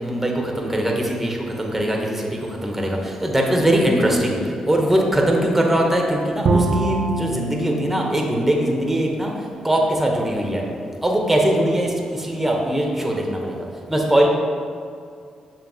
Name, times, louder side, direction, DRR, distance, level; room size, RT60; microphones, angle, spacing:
voice 1, 0.0-4.4 4.7-9.3 9.6-10.6 11.0-13.6 13.9-14.3, right 1 dB, 10° right, 0 dB, 0.8 m, -21 dB
Bowed string instrument, 6.5-9.6, right 3 dB, 65° right, 0.5 m, -25 dB
6.7 x 2.9 x 2.7 m, 2.2 s
cardioid pair, 60°, 2 cm